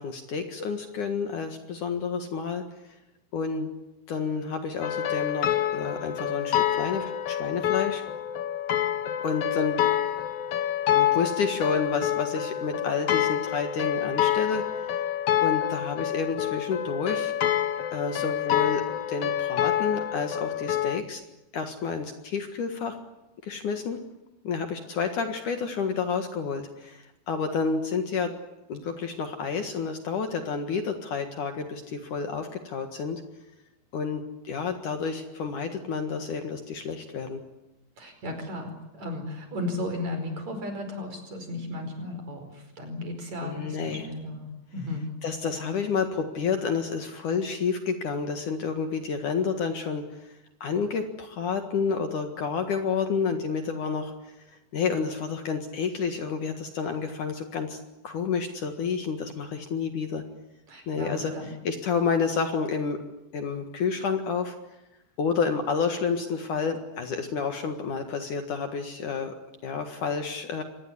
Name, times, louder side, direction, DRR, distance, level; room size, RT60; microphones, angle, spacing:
voice 1, 0.0-2.6 3.3-3.7 4.1-8.0 9.2-9.8 10.9-15.0 15.4-17.3 17.9-18.8 19.1-21.2 21.5-23.0 23.4-24.0 24.4-28.4 28.7-33.2 33.9-37.4 43.4-44.1 45.2-50.3 50.6-57.8 58.0-60.2 60.9-61.3 61.6-63.0 63.3-64.6 65.2-69.3 69.6-70.6, left 5 dB, 55° left, 6 dB, 2.9 m, -30 dB
sound 1, 4.8-21.0, left 11 dB, 75° left, 1.4 m, -27 dB
voice 2, 38.0-45.0 60.7-61.5, left 1 dB, 45° right, 6 dB, 6.0 m, -35 dB
25.5 x 20.0 x 9.9 m, 0.94 s
omnidirectional pair, 4.7 m